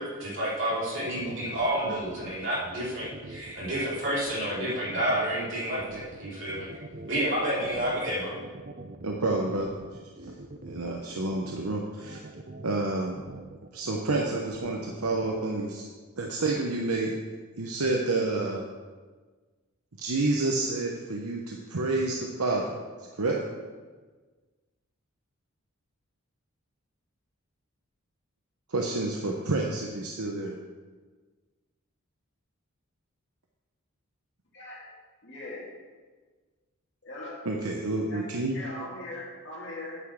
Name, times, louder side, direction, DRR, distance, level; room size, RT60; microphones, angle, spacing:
voice 1, 0.0-6.7 7.1-8.3, right 1 dB, 55° right, -7 dB, 3.5 m, -30 dB
sound 1, 0.7-15.4, right 2 dB, 40° right, 0.6 m, -44 dB
voice 2, 9.0-9.7 10.2-10.3 10.6-12.2 12.6-13.2 13.7-15.8 16.2-17.1 17.6-18.6 20.0-22.6 23.2-23.4 28.7-30.5 37.5-38.6, right 2 dB, 90° right, 0 dB, 0.9 m, -29 dB
voice 3, 34.5-34.9 35.2-35.7 37.0-37.3 38.1-38.2 38.5-40.0, left 2 dB, 55° left, -5 dB, 2.5 m, -40 dB
9.4 x 6.0 x 6.4 m, 1.4 s
head